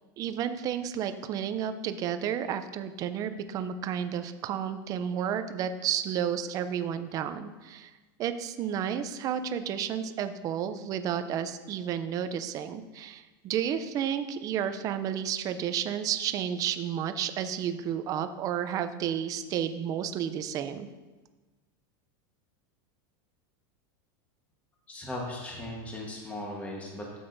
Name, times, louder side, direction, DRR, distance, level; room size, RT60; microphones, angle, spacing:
voice 1, 0.2-7.9 8.2-20.9, right 9 dB, 30° right, 10 dB, 0.5 m, -31 dB
voice 2, 24.9-27.2, left 1 dB, 10° left, -1 dB, 1.3 m, -38 dB
12.0 x 7.8 x 2.6 m, 1.2 s
supercardioid pair, 155°, 12 cm